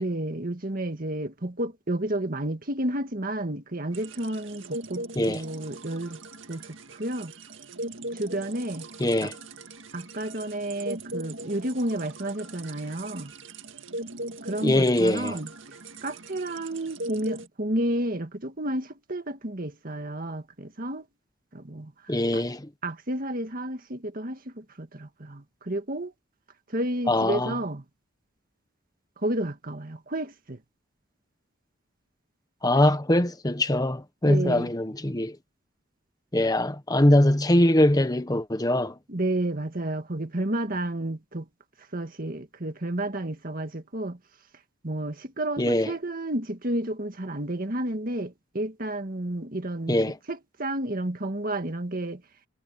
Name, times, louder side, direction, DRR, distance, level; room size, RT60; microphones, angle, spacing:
voice 1, 0.0-6.2 6.5-7.3 8.1-8.9 9.2-9.3 9.9-13.3 14.4-15.5 16.0-21.1 21.5-22.4 22.8-26.1 26.7-27.8 29.2-30.6 34.2-34.7 39.1-41.5 41.9-44.2 44.8-50.0 50.3-52.2, right 1 dB, 45° right, 1.9 m, -31 dB
sound 1, 3.9-17.5, right 2 dB, 75° right, 2.0 m, -40 dB
voice 2, 9.0-9.3 14.6-15.4 22.1-22.7 27.1-27.6 32.6-35.4 36.3-38.9 45.6-45.9 49.9-50.2, left 1 dB, 20° left, 1.1 m, -22 dB
head